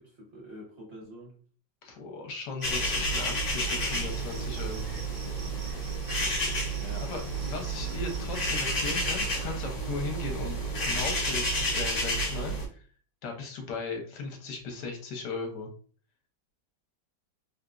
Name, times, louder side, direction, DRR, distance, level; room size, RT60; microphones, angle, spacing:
voice 1, 0.0-1.3 6.2-7.1 7.4-7.5 7.9-8.0 13.3-13.4, equal, 45° right, -3 dB, 0.9 m, -47 dB
voice 2, 1.8-5.0 7.0-10.6 10.8-12.8 13.2-15.7, left 4 dB, 65° left, 3 dB, 1.3 m, -37 dB
sound 1, 2.6-12.7, right 1 dB, 45° left, 1.1 m, -30 dB
Cricket, 2.6-8.4, right 4 dB, 75° right, 1.6 m, -49 dB
3.6 x 2.8 x 2.4 m, 0.43 s
omnidirectional pair, 2.1 m